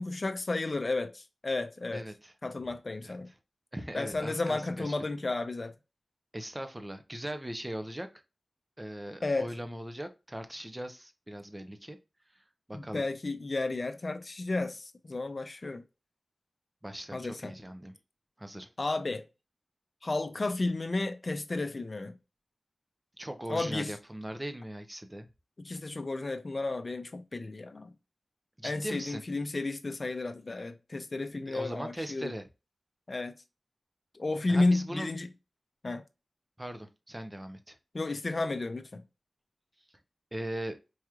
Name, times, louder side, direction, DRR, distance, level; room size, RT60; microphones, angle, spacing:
voice 1, 0.0-2.0 2.4-3.3 3.9-5.7 9.2-9.5 12.7-15.8 17.1-17.5 18.8-19.2 20.0-22.2 23.5-23.9 25.6-27.9 28.6-32.3 33.1-33.4 34.1-35.3 35.8-36.0 37.9-39.0, left 2 dB, 50° left, 0.5 m, -32 dB
voice 2, 1.9-2.3 3.0-3.1 3.7-5.0 6.3-8.1 8.8-12.0 12.3-13.0 16.8-17.9 18.4-18.7 23.2-25.3 28.6-29.2 31.5-32.4 34.5-35.1 36.6-37.8 40.3-40.8, right 1 dB, 15° right, 0.6 m, -39 dB
4.7 x 3.0 x 2.3 m
wide cardioid pair, 70°, 0 cm